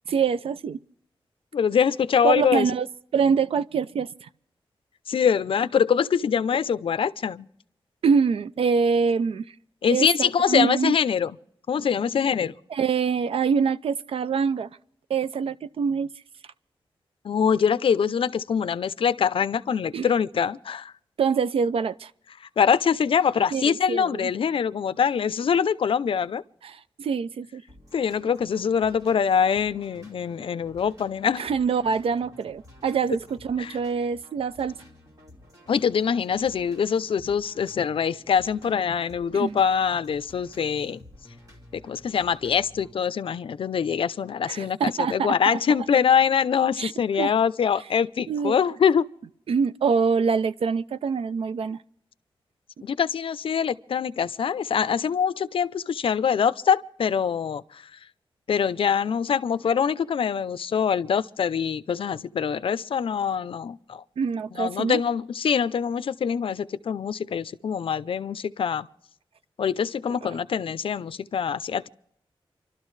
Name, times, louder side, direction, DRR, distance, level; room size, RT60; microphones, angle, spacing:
voice 1, 0.1-0.8 2.2-2.9 3.1-4.3 8.0-9.5 9.9-10.9 12.7-14.7 15.1-16.1 19.9-20.1 21.2-22.1 23.5-24.3 26.6-27.6 31.4-34.7 39.3-39.6 44.5-45.6 46.8-46.9 47.2-47.3 48.3-48.6 49.5-51.8 64.2-65.0, right 6 dB, 80° right, 0.5 m, -25 dB
voice 2, 1.5-2.7 5.1-7.5 9.8-11.3 11.7-12.5 17.2-20.9 22.6-26.4 27.9-31.5 33.6-33.7 35.7-41.0 41.8-49.1 52.8-57.8 58.5-64.0 64.5-68.9 69.6-71.9, left 7 dB, 70° left, 0.5 m, -24 dB
sound 1, 27.7-42.9, left 1 dB, 35° right, 2.5 m, -52 dB
28.5 x 12.5 x 3.2 m
wide cardioid pair, 165°, 9 cm